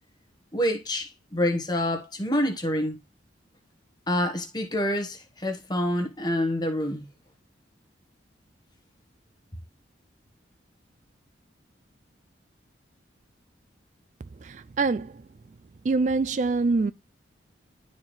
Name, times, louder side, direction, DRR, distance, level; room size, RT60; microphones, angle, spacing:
voice 1, 0.5-3.0 4.1-7.1, left 1 dB, 20° left, 1.2 m, -27 dB
voice 2, 14.4-15.2 15.8-16.9, right 3 dB, 40° right, 0.3 m, -25 dB
12.0 x 4.3 x 3.2 m
head